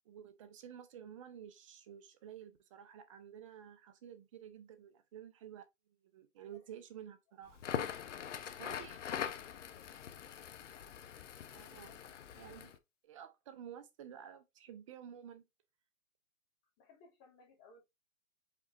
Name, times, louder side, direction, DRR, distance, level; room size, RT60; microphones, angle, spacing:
voice 1, 0.1-5.6 6.0-7.6 8.4-9.0 11.5-12.0 12.4-12.7 13.0-15.4, right 9 dB, 25° right, 0.6 m, -52 dB
Crackle, 7.5-12.8, left 9 dB, 60° left, 0.8 m, -42 dB
voice 2, 9.7-10.1 11.9-12.1 16.8-17.8, left 3 dB, 25° left, 2.5 m, -63 dB
5.1 x 4.1 x 2.5 m
hypercardioid pair, 140°, 41 cm